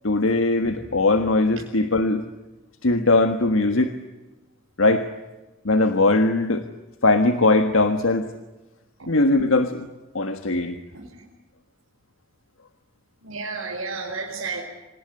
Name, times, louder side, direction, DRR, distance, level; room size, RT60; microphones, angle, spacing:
voice 1, 0.0-2.2 2.8-3.9 4.8-5.1 5.6-6.7 7.0-8.3 9.1-9.8 10.1-10.8, left 2 dB, 80° left, 8 dB, 1.5 m, -20 dB
voice 2, 10.9-11.2 13.2-14.6, right 4 dB, 80° right, -2 dB, 4.8 m, -32 dB
26.0 x 19.5 x 9.7 m, 1.1 s
head